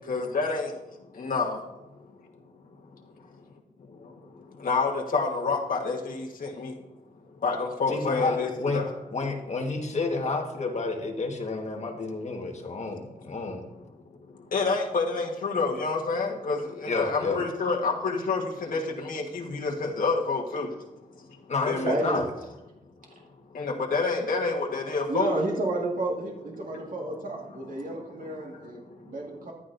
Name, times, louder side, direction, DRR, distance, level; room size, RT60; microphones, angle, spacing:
voice 1, 0.1-0.7 1.1-1.6 4.6-6.7 7.4-8.9 14.5-20.7 21.7-22.2 23.5-25.3, left 4 dB, 70° left, -1 dB, 1.4 m, -28 dB
voice 2, 7.9-13.6 16.8-17.4 21.5-22.2, left 3 dB, 50° left, 1 dB, 1.5 m, -30 dB
voice 3, 21.8-22.2 25.1-28.8 29.1-29.5, right 2 dB, 60° right, -2 dB, 1.9 m, -31 dB
14.5 x 10.5 x 2.6 m, 0.99 s
wide cardioid pair, 145°, 15 cm